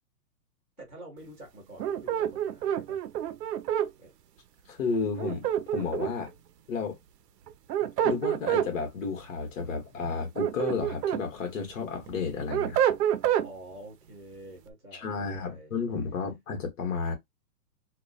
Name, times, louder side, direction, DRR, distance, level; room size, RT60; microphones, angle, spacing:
voice 1, 0.8-3.0 4.0-4.1 13.4-15.8, right 1 dB, 5° left, 0.5 m, -47 dB
sound 1, 1.8-3.9 5.2-6.3 7.5-8.7 10.1-11.2 11.7-13.5, right 10 dB, 75° right, 0.6 m, -27 dB
voice 2, 4.7-5.4 5.7-6.3 6.7-7.0 7.8-12.8 14.9-17.2, left 5 dB, 50° left, 1.3 m, -32 dB
2.8 x 2.3 x 2.3 m
hypercardioid pair, 165°, 49 cm